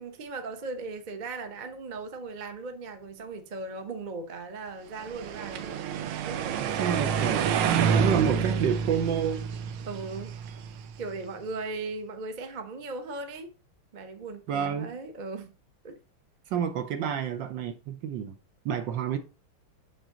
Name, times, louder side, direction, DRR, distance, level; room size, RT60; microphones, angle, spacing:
voice 1, 0.0-7.2 9.9-10.3 11.0-13.5 13.9-15.5 15.8-16.0, right 3 dB, 40° right, 0.6 m, -38 dB
sound 1, 5.0-11.1, right 7 dB, 90° right, 1.6 m, -28 dB
voice 2, 6.6-9.4 14.5-14.9 16.5-18.3 18.6-19.2, right 8 dB, 70° right, 1.3 m, -29 dB
6.7 x 6.2 x 3.7 m
omnidirectional pair, 2.3 m